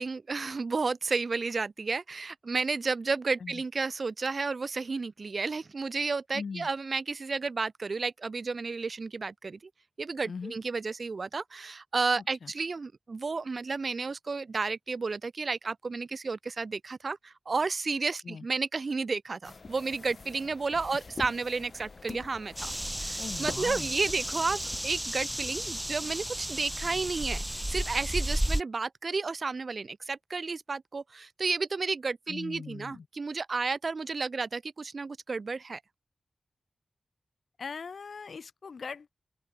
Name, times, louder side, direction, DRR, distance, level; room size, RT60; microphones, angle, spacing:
voice 1, 0.0-9.6 10.0-22.7 23.0-27.4 27.7-35.8, right 4 dB, 55° right, 0.4 m, -32 dB
voice 2, 6.3-6.7 10.2-10.5 12.2-12.5 18.2-18.5 23.2-23.9 32.3-33.1 37.6-39.1, left 5 dB, 75° left, 0.7 m, -40 dB
sound 1, 19.4-24.8, left 4 dB, 55° left, 2.6 m, -45 dB
sound 2, 22.6-28.6, right 1 dB, 10° right, 0.7 m, -33 dB
open air
wide cardioid pair, 85°, 0 cm